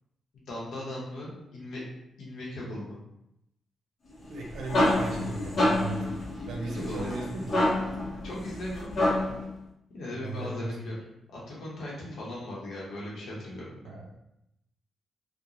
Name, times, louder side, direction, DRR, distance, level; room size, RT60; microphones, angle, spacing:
voice 1, 0.3-1.8 2.2-3.0 6.4-7.4 8.2-9.2 9.9-11.0 11.3-13.8, left 1 dB, 75° left, -5 dB, 0.8 m, -38 dB
sound 1, 4.2-9.5, left 1 dB, 50° left, 0.7 m, -28 dB
voice 2, 4.3-6.1 6.5-7.6 10.1-10.8 13.8-14.2, right 2 dB, 90° right, -1 dB, 0.6 m, -36 dB
2.9 x 2.1 x 2.5 m, 0.84 s
cardioid pair, 135°, 0 cm